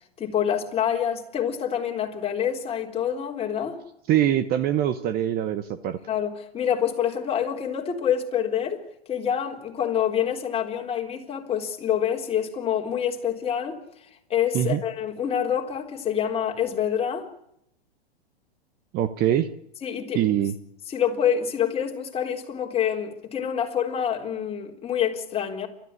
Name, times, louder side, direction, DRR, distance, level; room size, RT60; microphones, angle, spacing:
voice 1, 0.2-3.8 6.1-8.8 9.1-13.8 14.3-17.3 19.8-20.3 20.9-25.7, left 9 dB, 20° left, 3.8 m, -26 dB
voice 2, 4.1-6.0 14.5-14.8 18.9-19.5 20.1-20.5, right 11 dB, 30° right, 1.1 m, -23 dB
29.5 x 14.0 x 9.8 m
hypercardioid pair, 130°, 31 cm